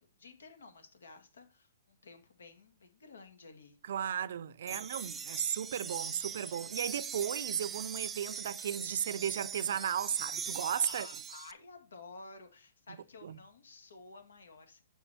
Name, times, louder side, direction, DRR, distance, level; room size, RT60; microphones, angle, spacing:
voice 1, 0.0-3.8 4.7-5.0 10.8-14.8, left 3 dB, 85° left, 2.0 m, -53 dB
voice 2, 3.9-11.1 13.2-13.4, right 9 dB, 65° right, 0.5 m, -35 dB
sound 1, 4.7-11.5, right 6 dB, 15° right, 0.4 m, -41 dB
7.4 x 5.6 x 4.2 m
hypercardioid pair, 145°, 0 cm